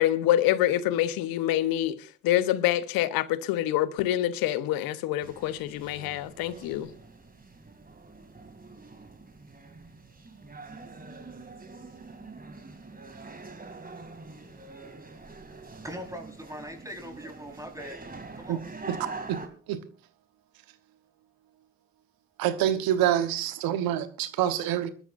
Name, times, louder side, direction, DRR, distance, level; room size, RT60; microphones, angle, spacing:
voice 1, 0.0-2.0 2.2-6.9, left 13 dB, 70° left, 1.0 m, -26 dB
sound 1, 5.2-19.5, right 3 dB, 25° right, 2.7 m, -45 dB
voice 2, 15.8-18.0 18.3-18.6, equal, 10° right, 4.5 m, -40 dB
voice 3, 22.4-24.9, right 11 dB, 70° right, 1.2 m, -26 dB
26.0 x 12.5 x 2.6 m
hypercardioid pair, 50°, 37 cm